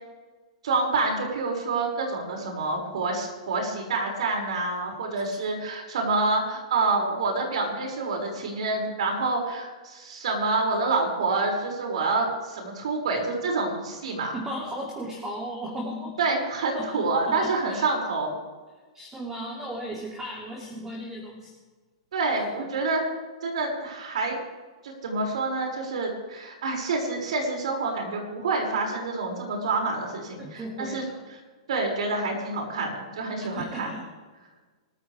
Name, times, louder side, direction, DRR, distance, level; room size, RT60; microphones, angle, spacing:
voice 1, 0.6-14.4 16.2-18.3 22.1-23.0 23.4-24.4 24.8-31.0 31.7-33.9, right 3 dB, 75° right, 1 dB, 6.0 m, -27 dB
voice 2, 14.3-16.2 16.7-17.9 18.9-21.5 22.4-22.5 30.4-31.2 33.5-34.0, equal, 15° right, -2 dB, 2.8 m, -36 dB
26.5 x 14.0 x 3.5 m, 1.4 s
hypercardioid pair, 135°, 3 cm